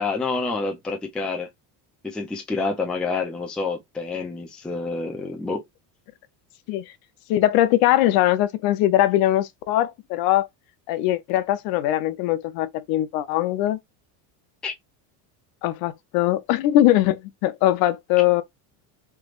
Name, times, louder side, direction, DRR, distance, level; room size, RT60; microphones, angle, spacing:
voice 1, 0.0-1.5 2.0-5.6 14.6-14.7, left 3 dB, ahead, 0.4 m, -28 dB
voice 2, 7.3-10.5 10.9-13.8 15.6-18.4, left 14 dB, 60° left, 0.6 m, -21 dB
3.4 x 3.1 x 2.3 m
cardioid pair, 170°, 41 cm